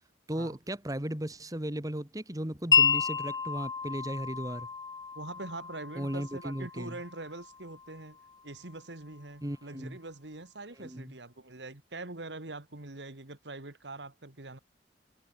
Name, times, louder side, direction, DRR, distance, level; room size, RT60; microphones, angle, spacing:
voice 1, 0.3-4.7 6.0-7.0 9.4-10.0 10.8-11.2, right 1 dB, 20° right, 1.9 m, -36 dB
Wind chime, 2.7-8.8, left 5 dB, 25° left, 0.8 m, -31 dB
voice 2, 5.2-8.2 8.4-14.6, right 2 dB, 80° right, 2.2 m, -43 dB
head